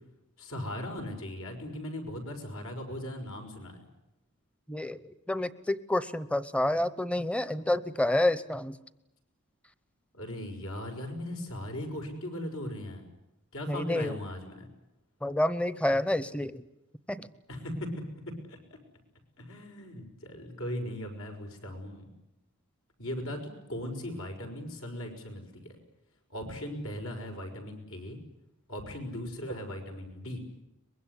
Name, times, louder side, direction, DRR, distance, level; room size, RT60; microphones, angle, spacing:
voice 1, 0.4-3.9 10.1-13.1 13.5-14.7 17.5-17.9 18.4-18.8 19.4-22.1 23.0-23.4 23.7-25.8 26.3-28.2 28.7-30.4, left 1 dB, 75° left, 4 dB, 5.8 m, -38 dB
voice 2, 4.7-8.8 13.7-14.1 15.2-16.6 17.1-17.3, left 1 dB, 5° left, 16 dB, 0.9 m, -29 dB
24.0 x 22.0 x 9.8 m, 0.89 s
head